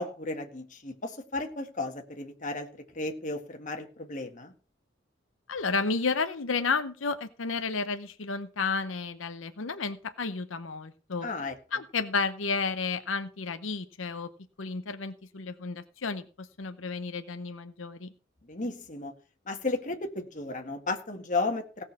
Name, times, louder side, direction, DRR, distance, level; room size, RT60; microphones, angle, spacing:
voice 1, 0.0-2.7 2.9-4.5 11.2-11.6 18.4-19.1 19.5-21.8, left 3 dB, 40° left, 4 dB, 1.8 m, -34 dB
voice 2, 5.5-11.3 11.7-14.3 14.6-18.1, left 4 dB, 85° left, 9 dB, 0.9 m, -32 dB
17.0 x 6.4 x 6.0 m, 0.37 s
head